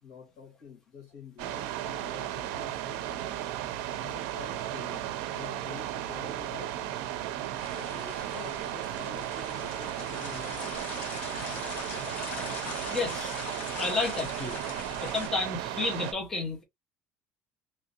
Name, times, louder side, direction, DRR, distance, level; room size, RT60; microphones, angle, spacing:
voice 1, 0.0-3.5 3.9-5.0 5.3-7.2 7.7-11.1, left 6 dB, 70° left, 1.5 m, -48 dB
sound 1, 1.4-16.1, right 12 dB, 85° right, 0.4 m, -35 dB
sound 2, 7.5-15.3, left 4 dB, 45° left, 1.1 m, -41 dB
voice 2, 12.9-13.4 13.8-14.6 15.0-16.6, left 3 dB, 10° left, 0.7 m, -31 dB
3.0 x 2.7 x 2.7 m
cardioid pair, 175°, 4 cm